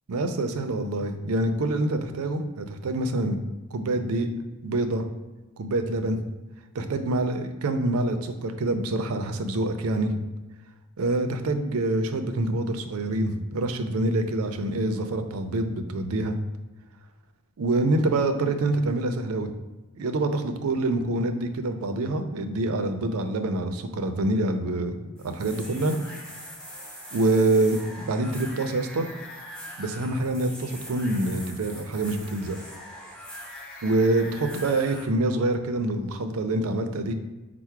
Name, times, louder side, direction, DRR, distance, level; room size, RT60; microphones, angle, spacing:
voice 1, 0.1-3.4 3.7-4.3 4.6-5.1 5.6-6.2 6.7-10.1 11.0-16.4 17.6-19.5 19.9-26.0 27.1-29.1 29.8-32.6 33.8-37.1, right 2 dB, 80° right, 7 dB, 0.5 m, -26 dB
sound 1, 25.2-35.0, equal, 5° left, 0.7 m, -42 dB
4.6 x 2.0 x 4.5 m, 1.1 s
head